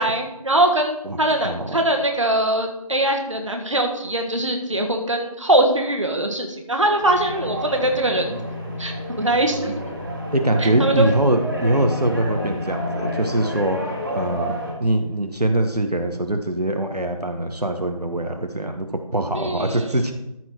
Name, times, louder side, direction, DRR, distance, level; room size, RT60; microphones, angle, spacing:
voice 1, 0.0-8.4 8.8-9.8 10.6-11.1 19.3-20.0, right 1 dB, 55° right, 3 dB, 1.5 m, -22 dB
voice 2, 1.4-1.8 10.3-13.8 14.1-20.1, right 1 dB, 90° right, 5 dB, 1.3 m, -23 dB
sound 1, 7.0-14.7, equal, 35° right, 2.0 m, -29 dB
14.0 x 4.7 x 4.5 m, 0.88 s
figure-of-eight pair, 170°, 20 cm